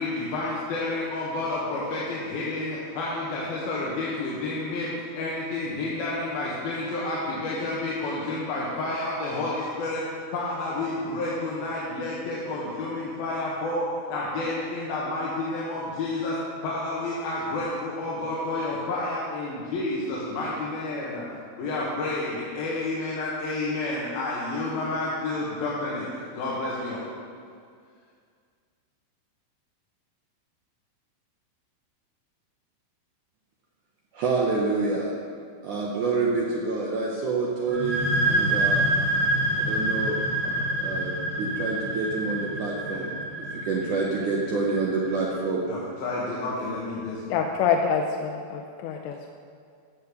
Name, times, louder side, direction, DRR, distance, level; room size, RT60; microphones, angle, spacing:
voice 1, 0.0-10.0 10.3-16.4 16.6-21.3 21.6-27.1 40.4-40.5 42.9-43.1 45.7-47.4, left 2 dB, 65° left, -6 dB, 3.1 m, -30 dB
voice 2, 34.1-35.1 35.6-38.0 38.3-38.9 39.6-40.2 40.8-43.1 43.6-45.6, right 3 dB, 80° right, -2 dB, 1.7 m, -27 dB
sound 1, 37.7-45.1, right 1 dB, 40° right, 2.7 m, -27 dB
voice 3, 47.3-49.3, left 6 dB, 85° left, 2 dB, 2.9 m, -26 dB
15.0 x 6.9 x 6.8 m, 2.2 s
omnidirectional pair, 5.1 m